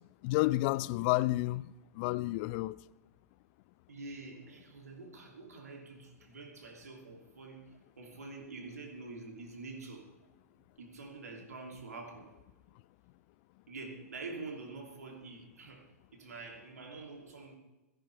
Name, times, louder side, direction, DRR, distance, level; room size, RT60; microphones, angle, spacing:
voice 1, 0.2-2.8, left 18 dB, 40° left, 0.4 m, -30 dB
voice 2, 3.9-10.1 10.8-12.4 13.7-15.9 16.1-17.6, right 3 dB, 75° right, 2.9 m, -46 dB
16.5 x 15.0 x 3.4 m
figure-of-eight pair, 100°, 8 cm